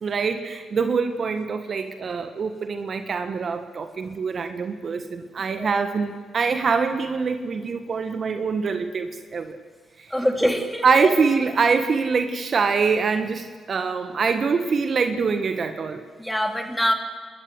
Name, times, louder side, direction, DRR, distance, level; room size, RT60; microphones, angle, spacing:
voice 1, 0.0-9.6 10.0-10.1 10.8-16.0, right 5 dB, 50° right, 8 dB, 1.5 m, -24 dB
voice 2, 10.1-11.2 16.2-16.9, equal, 5° left, 4 dB, 3.7 m, -24 dB
28.5 x 13.0 x 9.7 m, 1.5 s
supercardioid pair, 55°, 0 cm